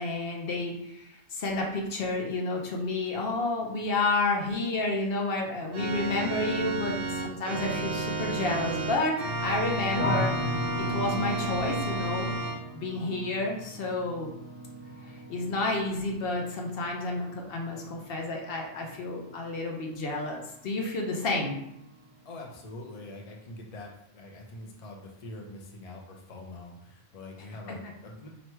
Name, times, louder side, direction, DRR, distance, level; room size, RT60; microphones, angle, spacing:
voice 1, 0.0-9.1 9.4-10.3 10.9-12.3 12.7-14.3 15.3-21.6 27.7-27.8, left 2 dB, 65° left, 0 dB, 0.9 m, -30 dB
Organ, 5.7-12.6, right 2 dB, 60° right, 0.8 m, -31 dB
sound 1, 10.0-21.0 21.3-22.0, left 1 dB, 30° right, 1.1 m, -38 dB
voice 2, 22.2-28.3, left 2 dB, 45° left, 1 dB, 0.6 m, -44 dB
3.0 x 2.6 x 4.5 m, 0.80 s
omnidirectional pair, 1.1 m